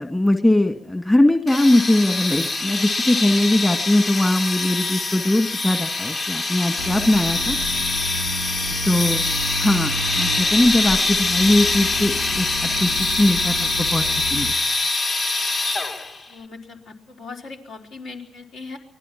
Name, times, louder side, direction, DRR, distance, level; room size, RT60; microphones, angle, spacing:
voice 1, 0.0-7.6 7.9-8.0 8.9-9.2 9.6-14.5, left 1 dB, 20° left, 6 dB, 1.9 m, -20 dB
sound 1, 1.5-16.2, left 3 dB, 50° left, 2.5 m, -24 dB
sound 2, 6.8-14.5, right 1 dB, 90° left, 1.4 m, -32 dB
voice 2, 16.3-18.8, left 4 dB, 70° left, 1 dB, 4.3 m, -39 dB
24.5 x 19.0 x 5.9 m, 0.64 s
hypercardioid pair, 50°, 0 cm